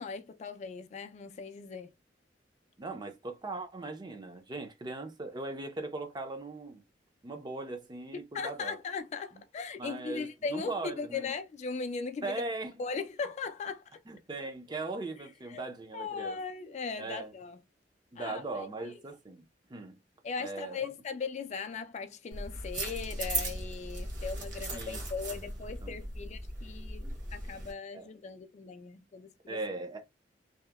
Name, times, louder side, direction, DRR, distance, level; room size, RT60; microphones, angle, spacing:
voice 1, 0.0-1.9 8.1-12.3 12.8-14.0 15.5-15.6 15.9-17.6 18.2-18.4 18.8-19.0 20.2-29.6, left 5 dB, 40° left, 0.3 m, -38 dB
voice 2, 2.8-6.8 7.2-8.8 9.8-11.3 12.2-12.7 14.1-16.4 17.0-17.3 18.1-20.0 20.4-20.9 24.7-25.0 25.8-25.9 27.9-28.1 29.5-30.0, right 2 dB, 25° right, 0.5 m, -39 dB
sound 1, 22.3-27.7, right 2 dB, 50° right, 1.1 m, -38 dB
2.8 x 2.1 x 2.2 m
head